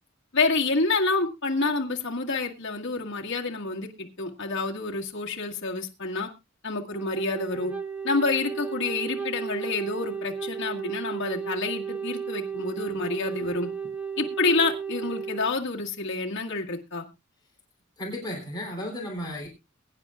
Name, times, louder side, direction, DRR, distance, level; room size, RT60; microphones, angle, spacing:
voice 1, 0.3-6.3 6.6-7.7 8.0-13.7 14.2-17.1, left 3 dB, 60° left, -1 dB, 1.9 m, -28 dB
Wind instrument woodwind instrument, 6.9-15.5, right 6 dB, 5° right, 0.7 m, -34 dB
voice 2, 18.0-19.5, left 1 dB, 20° left, -1 dB, 3.2 m, -34 dB
22.5 x 9.7 x 2.4 m, 0.26 s
head